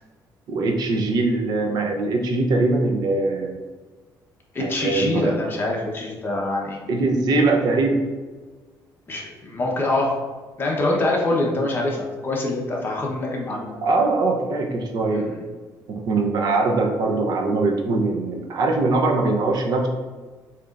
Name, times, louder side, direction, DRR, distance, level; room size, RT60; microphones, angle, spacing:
voice 1, 0.5-3.6 4.6-5.3 6.9-8.0 13.8-15.2 15.9-19.9, right 3 dB, 65° right, 1 dB, 0.7 m, -22 dB
voice 2, 4.5-6.8 9.1-10.1 10.6-13.7 15.1-15.4, left 2 dB, 30° left, -2 dB, 0.9 m, -24 dB
6.9 x 3.0 x 2.5 m, 1.4 s
cardioid pair, 135°, 7 cm